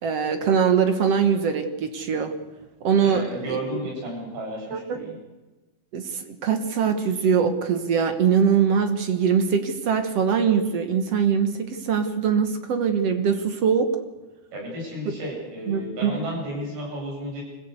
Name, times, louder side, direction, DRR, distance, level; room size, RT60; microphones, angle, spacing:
voice 1, 0.0-2.3 2.8-3.6 4.7-5.0 5.9-13.9 15.7-16.3, right 6 dB, 60° right, 7 dB, 1.8 m, -22 dB
voice 2, 3.0-5.2 14.5-17.4, equal, 85° right, -2 dB, 10.0 m, -33 dB
25.5 x 15.5 x 8.2 m, 1.1 s
omnidirectional pair, 4.3 m